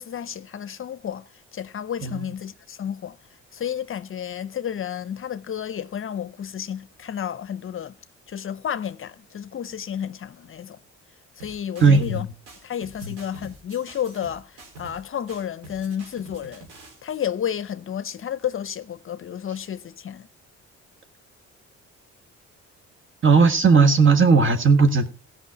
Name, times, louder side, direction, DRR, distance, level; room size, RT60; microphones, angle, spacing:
voice 1, 0.0-3.2 3.5-8.0 8.3-10.8 11.4-12.3 12.6-16.7 17.0-20.3, left 9 dB, 45° left, 0.6 m, -31 dB
sound 1, 11.4-12.2 12.5-15.0 15.3-17.0, right 2 dB, 85° right, 3.8 m, -46 dB
voice 2, 11.8-12.2 13.0-13.1 23.2-25.1, right 4 dB, 40° right, 1.5 m, -16 dB
15.0 x 5.6 x 5.7 m
cardioid pair, 90°, 30 cm